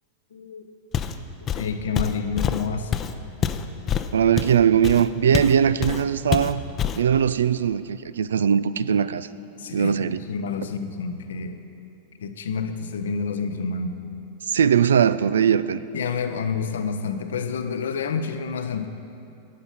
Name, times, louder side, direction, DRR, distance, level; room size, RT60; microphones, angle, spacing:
voice 1, 0.3-0.7 1.4-2.9 9.6-10.0 10.3-11.6 12.2-14.0 15.9-18.9, left 5 dB, 75° left, 8 dB, 0.7 m, -29 dB
Walk footsteps, 0.9-1.2 1.5-5.6 5.8-6.0 6.3-7.1, left 8 dB, 30° left, 0.6 m, -26 dB
voice 2, 4.1-6.6 7.0-9.3 9.7-10.2 14.5-15.8, right 8 dB, 80° right, 16 dB, 0.3 m, -20 dB
11.5 x 8.0 x 5.6 m, 2.8 s
hypercardioid pair, 100°, 0 cm